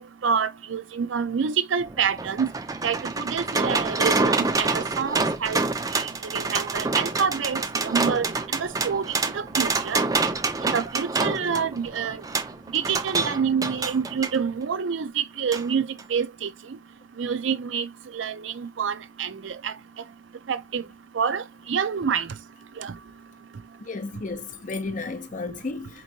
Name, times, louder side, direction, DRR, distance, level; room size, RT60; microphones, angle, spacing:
voice 1, 0.0-2.5 2.8-5.6 5.9-10.1 10.6-12.2 12.7-16.5 17.2-19.7 20.5-20.8 21.1-22.3 22.8-22.9, right 6 dB, 85° right, 0.5 m, -27 dB
sound 1, 1.8-14.4 15.5-15.6 16.0-16.1, right 3 dB, 20° right, 0.4 m, -27 dB
voice 2, 23.8-26.0, left 3 dB, 45° left, 0.5 m, -33 dB
4.4 x 3.0 x 2.7 m
head